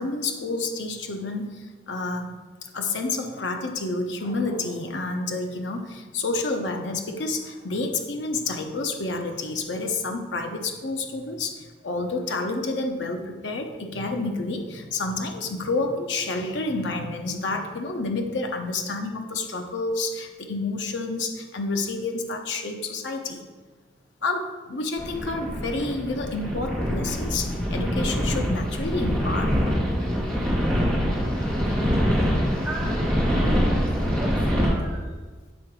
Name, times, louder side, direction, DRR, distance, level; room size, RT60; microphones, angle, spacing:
voice 1, 0.0-2.4 2.7-23.4 24.2-29.5, left 3 dB, 85° left, 3 dB, 0.8 m, -29 dB
sound 1, 25.0-34.7, equal, 10° left, 2.2 m, -24 dB
voice 2, 32.6-35.1, right 1 dB, 10° right, -7 dB, 1.9 m, -38 dB
8.2 x 3.8 x 4.7 m, 1.3 s
head